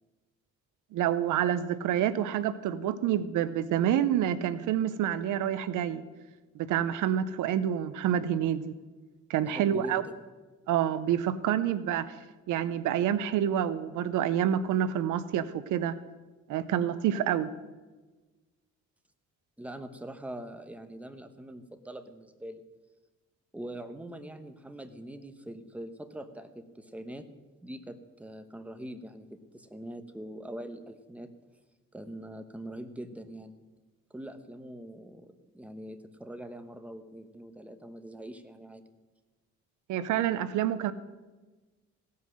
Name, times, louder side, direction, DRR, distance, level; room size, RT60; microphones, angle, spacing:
voice 1, 0.9-6.0 6.5-8.7 9.3-10.0 10.7-12.1 12.5-15.9 16.5-17.5 39.9-40.9, right 10 dB, 85° right, 15 dB, 0.6 m, -28 dB
voice 2, 9.5-10.1 19.6-22.6 23.5-27.3 27.6-31.3 31.9-33.5 34.1-38.9, right 1 dB, 5° right, 8 dB, 1.0 m, -43 dB
16.5 x 5.6 x 6.3 m, 1.2 s
cardioid pair, 90°, 30 cm